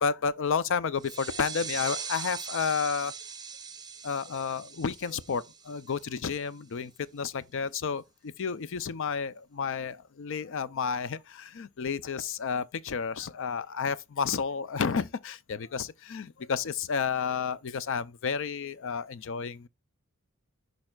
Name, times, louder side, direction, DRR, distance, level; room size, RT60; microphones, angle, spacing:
voice 1, 0.0-3.1 4.0-8.0 8.4-19.7, left 6 dB, 60° left, 0.5 m, -31 dB
sound 1, 1.0-6.3, right 6 dB, 20° right, 0.7 m, -40 dB
13.0 x 5.4 x 2.3 m
head